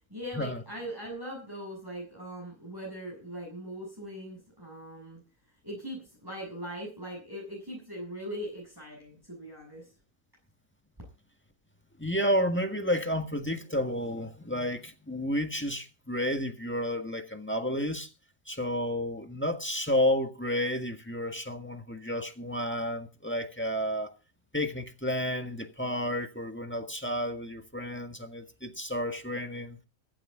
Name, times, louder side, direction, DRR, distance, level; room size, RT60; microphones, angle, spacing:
voice 1, 0.1-5.2 5.6-9.9, equal, 15° right, 7.1 m, -40 dB
voice 2, 12.0-18.1 18.5-24.1 24.5-29.8, equal, 10° left, 1.6 m, -31 dB
16.0 x 14.5 x 3.8 m
omnidirectional pair, 1.6 m